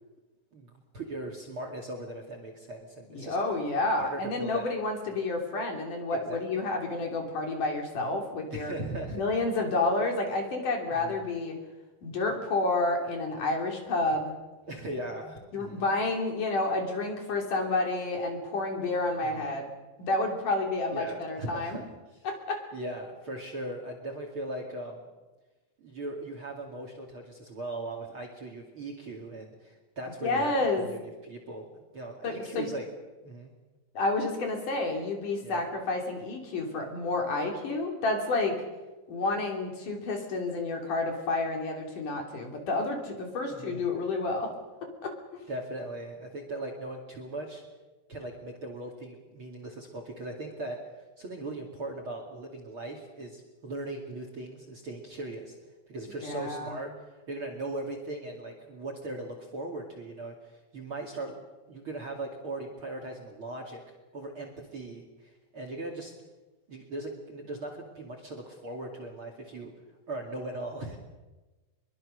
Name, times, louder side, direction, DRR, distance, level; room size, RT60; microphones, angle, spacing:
voice 1, 0.5-3.4 4.0-4.7 6.1-6.6 8.5-9.2 11.0-11.2 14.7-15.8 19.3-19.5 20.9-21.8 22.7-25.0 25.8-32.9 33.2-33.5 35.4-35.6 43.5-43.9 45.5-47.6 48.1-50.9 51.2-55.6 55.9-61.4 61.7-63.8 64.1-66.1 66.7-69.7 70.1-71.0, right 2 dB, 35° right, 3 dB, 2.6 m, -39 dB
voice 2, 3.1-8.7 9.1-11.6 12.0-14.3 15.5-19.7 20.0-21.8 22.2-22.6 30.2-30.9 32.2-32.7 33.9-38.6 39.1-44.5 45.0-45.4 56.2-56.8, left 2 dB, 50° left, 2 dB, 4.3 m, -30 dB
24.0 x 22.5 x 6.6 m, 1.2 s
omnidirectional pair, 4.8 m